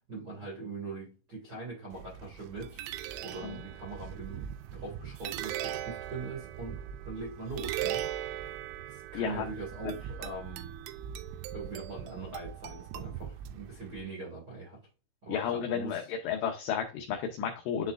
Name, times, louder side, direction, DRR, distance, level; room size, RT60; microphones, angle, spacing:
voice 1, 0.0-2.8 3.2-8.6 8.9-10.7 11.5-14.8 15.2-16.1, right 3 dB, 65° right, 1.0 m, -42 dB
sound 1, 1.9-14.0, right 11 dB, 85° right, 3.1 m, -40 dB
voice 2, 9.1-9.5 15.3-17.9, left 8 dB, 85° left, 2.5 m, -32 dB
10.5 x 4.2 x 2.5 m
omnidirectional pair, 6.0 m